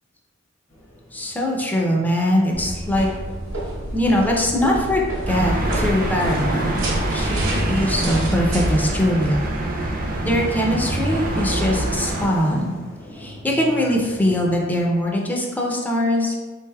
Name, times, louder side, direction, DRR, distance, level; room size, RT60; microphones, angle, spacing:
sound 1, 0.7-15.1, left 1 dB, 40° left, 0.8 m, -41 dB
voice 1, 1.1-3.1 3.9-6.8 7.1-9.4 10.2-12.7 13.1-16.3, left 1 dB, 10° left, -1 dB, 0.5 m, -22 dB
sound 2, 2.5-9.0, right 1 dB, 70° right, 0.9 m, -30 dB
sound 3, 5.3-12.3, right 1 dB, 45° right, 0.5 m, -24 dB
3.8 x 3.3 x 2.2 m, 1.3 s
head